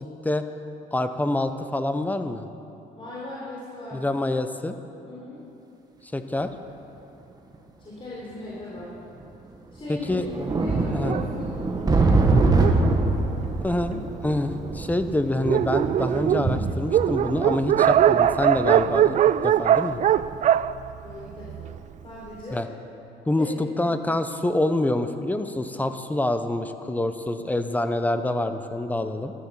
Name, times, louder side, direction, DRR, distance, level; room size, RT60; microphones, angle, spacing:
voice 1, 0.9-2.5 3.9-4.8 6.0-6.5 9.9-10.5 10.9-11.1 13.6-19.2 19.4-20.0 22.5-22.7 23.3-29.3, left 1 dB, 10° left, 9 dB, 0.9 m, -26 dB
voice 2, 3.0-4.0 5.0-5.4 7.8-8.9 9.7-10.2 10.6-13.6 21.0-21.7 22.0-22.6 23.4-23.7, left 2 dB, 30° left, -7 dB, 4.0 m, -38 dB
sound 1, 6.4-6.5 7.5-7.6 8.8-8.9 9.2-9.3 9.8-19.9 20.3-20.5, right 3 dB, 25° right, 1.4 m, -25 dB
Dog, 11.0-14.0 14.7-14.8 15.1-15.2 15.4-21.8, right 10 dB, 45° right, 0.4 m, -22 dB
13.0 x 13.0 x 7.2 m, 2.9 s
cardioid pair, 110°, 17 cm